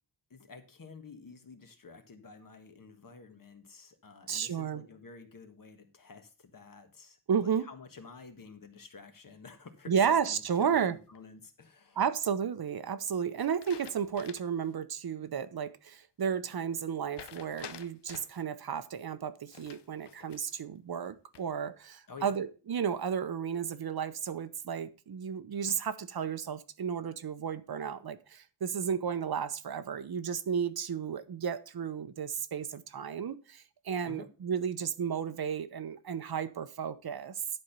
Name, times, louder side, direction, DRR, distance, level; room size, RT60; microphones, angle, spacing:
voice 1, 0.3-7.2 7.4-12.0 22.1-22.4 34.1-34.3, left 4 dB, 50° left, 1.5 m, -50 dB
voice 2, 4.3-4.8 7.3-7.7 9.9-10.9 12.0-37.3, right 7 dB, 60° right, 0.8 m, -33 dB
sound 1, 10.3-11.2 13.4-14.6 15.0-15.1 17.1-18.4 19.5-20.6 21.1-21.7, left 9 dB, 80° left, 0.8 m, -50 dB
11.0 x 4.5 x 6.7 m
wide cardioid pair, 150°, 41 cm